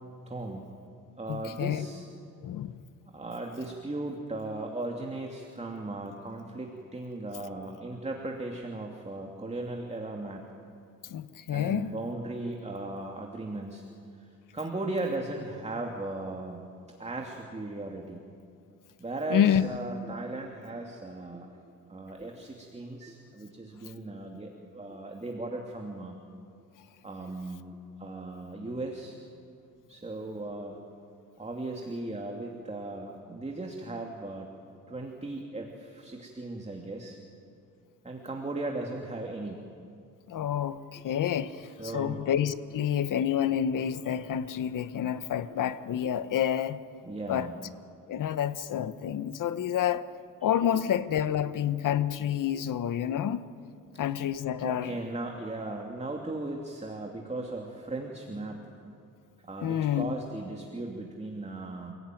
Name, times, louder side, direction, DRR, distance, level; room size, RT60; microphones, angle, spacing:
voice 1, 0.3-0.6 1.2-2.0 3.1-10.4 11.5-13.8 14.2-14.3 14.5-16.6 17.0-18.2 19.0-21.5 21.9-26.2 27.0-29.2 29.9-30.8 31.4-34.5 34.9-37.2 38.0-39.6 41.8-42.2 47.0-47.6 50.4-50.5 50.7-50.8 51.4-51.6 52.5-52.6 54.6-58.7 59.4-61.9, right 2 dB, 20° right, 2.7 m, -37 dB
voice 2, 1.3-1.9 2.4-2.8 11.0-11.9 19.3-19.7 40.3-46.8 47.3-47.5 48.1-50.0 50.4-53.4 54.0-54.9 59.6-60.1, left 9 dB, 70° left, 1.1 m, -28 dB
29.5 x 17.0 x 9.3 m
cardioid pair, 80°, 33 cm